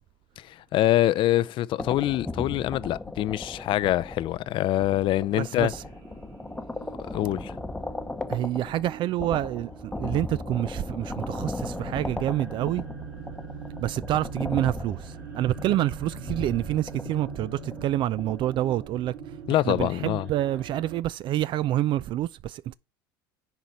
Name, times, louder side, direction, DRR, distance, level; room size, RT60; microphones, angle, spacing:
voice 1, 0.4-5.7 7.1-7.6 19.5-20.3, left 14 dB, 45° left, 0.5 m, -25 dB
sound 1, 1.8-18.9, left 2 dB, 10° left, 0.9 m, -37 dB
sound 2, 5.2-21.0, right 5 dB, 85° right, 2.0 m, -43 dB
voice 2, 5.4-5.8 8.3-12.8 13.8-22.7, right 13 dB, 45° right, 0.4 m, -28 dB
Wind instrument woodwind instrument, 11.1-17.3, right 4 dB, 15° right, 1.5 m, -52 dB
10.5 x 4.0 x 4.4 m
hypercardioid pair, 90°, 12 cm